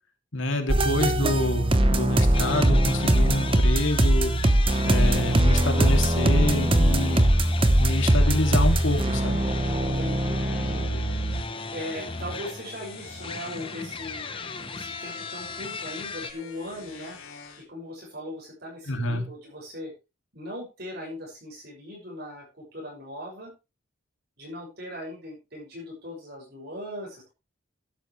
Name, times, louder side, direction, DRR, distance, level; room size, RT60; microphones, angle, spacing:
voice 1, 0.3-4.3 4.8-7.3 7.8-9.4 18.9-19.2, left 1 dB, 75° left, 5 dB, 2.7 m, -27 dB
sound 1, 0.7-11.4, right 1 dB, 25° right, 0.9 m, -21 dB
sound 2, 2.3-16.3, left 4 dB, 25° left, 0.9 m, -37 dB
sound 3, 7.7-17.6, left 4 dB, 90° left, 3.8 m, -46 dB
voice 2, 9.8-11.0 11.7-14.3 14.7-17.2 17.6-19.9 20.3-23.5 24.4-27.3, left 1 dB, 50° right, -1 dB, 6.7 m, -39 dB
12.5 x 11.5 x 3.3 m, 0.28 s
head